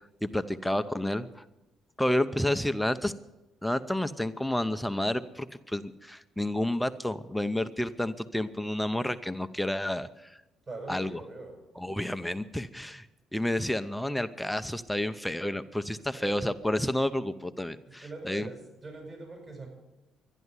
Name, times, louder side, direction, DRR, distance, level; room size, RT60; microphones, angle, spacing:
voice 1, 0.2-1.4 2.0-3.1 3.6-10.4 10.9-11.2 11.8-13.1 13.3-18.5, left 1 dB, 5° left, 11 dB, 0.7 m, -30 dB
voice 2, 10.7-11.6 16.0-16.4 17.8-19.7, right 2 dB, 40° right, 2 dB, 7.5 m, -43 dB
12.0 x 11.0 x 9.7 m, 0.99 s
supercardioid pair, 70°, 0 cm